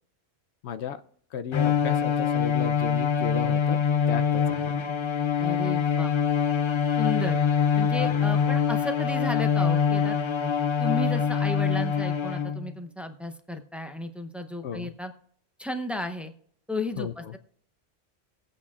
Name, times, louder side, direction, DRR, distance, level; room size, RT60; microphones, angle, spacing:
voice 1, 0.6-1.0 1.3-4.8 14.6-14.9 17.0-17.3, left 8 dB, 80° left, 11 dB, 0.9 m, -34 dB
Bowed string instrument, 1.5-12.7, left 7 dB, 50° left, 0.3 m, -24 dB
voice 2, 5.4-6.2 7.0-7.4 7.8-10.2 10.8-15.1 15.6-16.3 16.7-17.4, left 1 dB, ahead, 6 dB, 0.6 m, -34 dB
20.5 x 8.5 x 2.4 m, 0.62 s
omnidirectional pair, 1.1 m